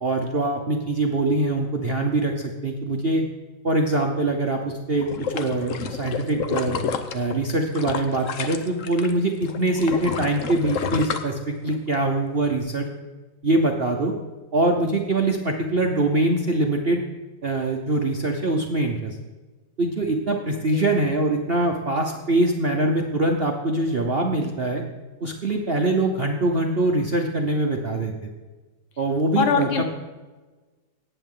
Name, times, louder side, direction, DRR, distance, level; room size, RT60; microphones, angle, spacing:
voice 1, 0.0-3.2 3.6-6.8 7.1-12.9 13.4-14.1 14.5-17.0 17.4-19.2 19.8-24.8 25.2-28.3 29.0-29.8, right 2 dB, 50° right, 1 dB, 0.7 m, -23 dB
sound 1, 5.0-9.1 9.4-11.9 12.4-12.5, left 6 dB, 60° left, 0.9 m, -29 dB
voice 2, 29.4-29.8, left 5 dB, 80° left, 7 dB, 1.9 m, -22 dB
18.0 x 8.2 x 3.8 m, 1.3 s
omnidirectional pair, 2.2 m